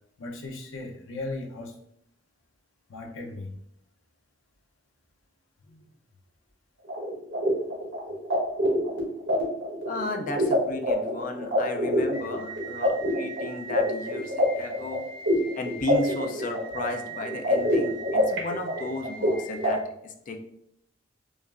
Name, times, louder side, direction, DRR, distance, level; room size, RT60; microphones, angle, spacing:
voice 1, 0.2-1.7 2.9-3.5, left 2 dB, 85° left, 1 dB, 0.7 m, -37 dB
sound 1, 6.9-19.7, equal, 70° right, 1.2 m, -27 dB
voice 2, 9.9-15.0 15.5-20.4, left 2 dB, 45° left, 5 dB, 0.4 m, -34 dB
5.0 x 2.4 x 2.5 m, 0.75 s
head